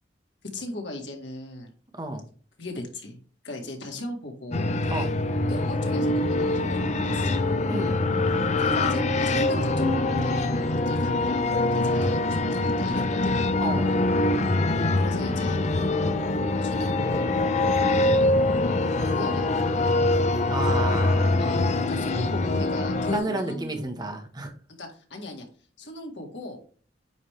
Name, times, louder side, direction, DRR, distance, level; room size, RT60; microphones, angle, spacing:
voice 1, 0.5-1.7 2.6-3.2 3.4-5.1 5.5-7.4 8.5-13.3 15.0-15.6 16.6-17.3 19.0-19.9 20.7-21.1 21.4-23.8 24.8-25.5 25.8-26.6, left 2 dB, 90° left, 2 dB, 2.0 m, -37 dB
voice 2, 1.9-2.3 4.9-5.1 7.7-8.0 13.6-13.9 20.5-21.5 23.1-24.5, right 2 dB, 25° right, 4 dB, 1.2 m, -31 dB
sound 1, 4.5-23.2, left 2 dB, 40° left, 0.6 m, -24 dB
9.2 x 3.7 x 3.3 m, 0.42 s
head